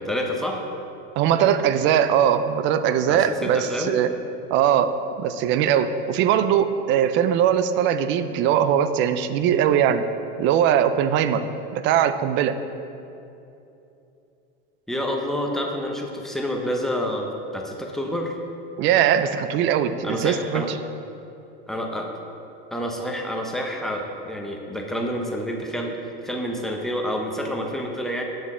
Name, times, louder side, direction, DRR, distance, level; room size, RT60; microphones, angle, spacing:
voice 1, 0.1-0.6 3.1-3.9 14.9-18.4 20.0-20.7 21.7-22.1 22.7-28.2, equal, ahead, 0 dB, 0.7 m, -28 dB
voice 2, 1.2-4.1 4.5-10.0 10.4-11.5 11.7-12.6 18.8-20.6, right 9 dB, 40° right, 11 dB, 0.4 m, -20 dB
7.5 x 6.1 x 3.6 m, 2.8 s
supercardioid pair, 120°, 29 cm